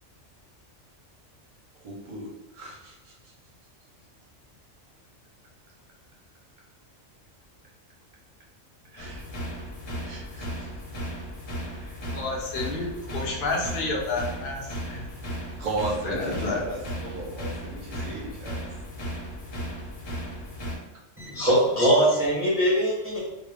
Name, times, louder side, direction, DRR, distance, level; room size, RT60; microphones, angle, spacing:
voice 1, 1.8-2.3 2.5-3.1 8.9-9.2 10.0-10.7 11.7-12.0 15.6-18.6, right 2 dB, 50° right, -3 dB, 0.7 m, -36 dB
sound 1, 9.0-20.8, equal, 80° left, 1.0 m, -36 dB
voice 2, 12.1-12.9 13.1-15.1 16.0-16.6, left 3 dB, 55° left, -1 dB, 0.7 m, -30 dB
voice 3, 21.2-23.2, right 1 dB, 20° right, -7 dB, 0.4 m, -22 dB
2.3 x 2.0 x 3.2 m, 1.0 s
omnidirectional pair, 1.3 m